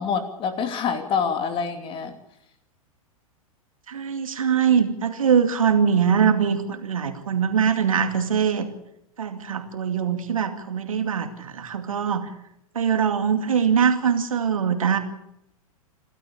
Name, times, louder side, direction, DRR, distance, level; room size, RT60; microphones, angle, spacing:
voice 1, 0.0-2.1, left 6 dB, 30° left, 8 dB, 2.8 m, -26 dB
voice 2, 3.9-8.7 9.2-12.3 12.7-15.0, right 7 dB, 65° right, 8 dB, 2.4 m, -22 dB
27.5 x 13.0 x 8.6 m, 0.80 s
figure-of-eight pair, 95°, 19 cm